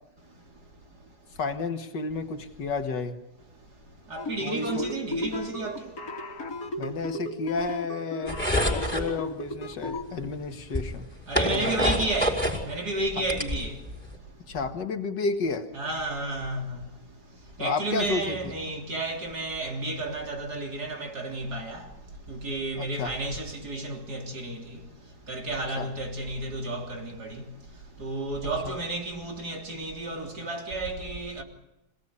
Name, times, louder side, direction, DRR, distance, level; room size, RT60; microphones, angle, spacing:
voice 1, 1.4-3.2 4.4-4.9 6.8-8.4 8.7-11.1 11.5-12.0 14.5-15.7 17.6-18.5 22.8-23.1 25.8-25.9 28.7-28.8, left 4 dB, 85° left, 2.4 m, -31 dB
voice 2, 4.1-5.8 11.3-13.7 15.7-16.8 17.6-21.8 22.3-24.8 25.3-27.4 28.0-31.4, right 2 dB, 65° right, 4.0 m, -32 dB
sound 1, 4.2-10.0, left 1 dB, 55° left, 2.8 m, -35 dB
sound 2, 8.3-9.1 10.2-10.3 10.7-12.6 13.0-14.1, equal, 5° left, 5.2 m, -26 dB
27.0 x 18.0 x 9.7 m
omnidirectional pair, 1.8 m